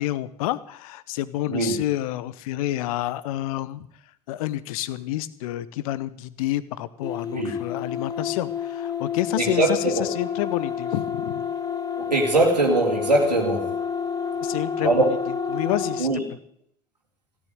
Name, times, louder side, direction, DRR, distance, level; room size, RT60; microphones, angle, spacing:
voice 1, 0.0-3.9 4.3-11.5 14.4-15.2 15.5-16.1, left 14 dB, 60° left, 17 dB, 0.9 m, -29 dB
sound 1, 7.0-16.1, left 7 dB, 20° left, 1.7 m, -29 dB
voice 2, 7.3-7.6 9.4-10.0 12.0-13.8 14.8-15.1 16.0-16.2, right 2 dB, 85° right, -1 dB, 2.3 m, -22 dB
16.5 x 9.7 x 7.9 m, 0.67 s
figure-of-eight pair, 70°, 21 cm